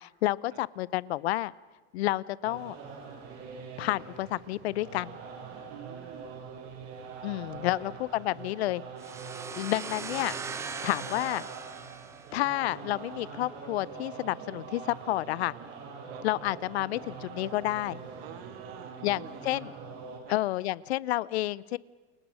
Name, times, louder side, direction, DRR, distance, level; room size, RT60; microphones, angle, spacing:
voice 1, 0.0-1.5 1.9-2.8 3.8-5.2 7.2-8.8 9.6-10.4 10.8-11.4 12.3-15.5 16.2-18.0 19.0-19.7 20.3-21.8, left 16 dB, 85° left, 22 dB, 0.8 m, -30 dB
sound 1, 2.4-20.2, right 5 dB, 40° right, 5.3 m, -44 dB
voice 2, 5.7-6.4 7.5-8.0 16.1-16.2 18.2-19.4 20.2-20.4, right 11 dB, 70° right, 9 dB, 2.1 m, -49 dB
sound 2, 9.0-12.7, right 5 dB, 10° right, 0.7 m, -40 dB
29.5 x 23.0 x 6.4 m, 1.3 s
supercardioid pair, 175°, 31 cm